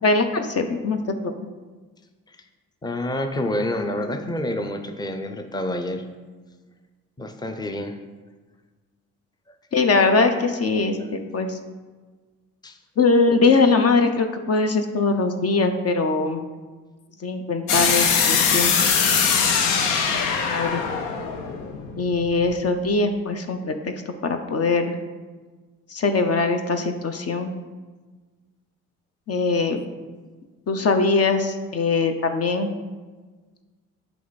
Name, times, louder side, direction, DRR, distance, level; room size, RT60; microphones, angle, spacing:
voice 1, 0.0-1.5 9.7-11.6 13.0-16.4 17.2-19.0 20.1-20.8 22.0-25.0 25.9-27.5 29.3-29.8 30.7-32.7, left 3 dB, 45° left, 7 dB, 0.8 m, -22 dB
voice 2, 2.8-6.0 7.2-8.0 11.0-11.1 12.6-12.8, left 1 dB, 10° left, 6 dB, 0.7 m, -28 dB
sound 1, 17.7-22.5, left 6 dB, 90° left, 0.8 m, -21 dB
8.3 x 4.8 x 4.1 m, 1.4 s
supercardioid pair, 55°, 34 cm